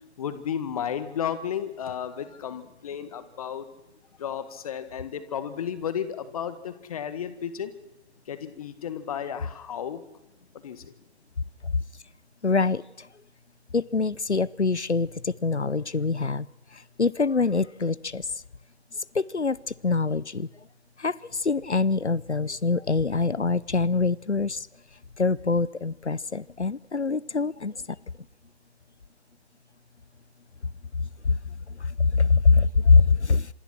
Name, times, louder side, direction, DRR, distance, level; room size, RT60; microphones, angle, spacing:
voice 1, 0.2-3.7 4.2-7.7 8.3-10.0 10.5-10.8, left 8 dB, 35° left, 12 dB, 1.9 m, -33 dB
voice 2, 12.4-13.1 13.7-16.5 16.7-18.3 19.1-19.6 19.8-20.5 21.0-24.7 25.2-27.7 31.2-31.4 32.0-33.5, left 4 dB, 90° left, 22 dB, 0.8 m, -24 dB
26.5 x 24.0 x 4.5 m, 0.87 s
figure-of-eight pair, 140°, 33 cm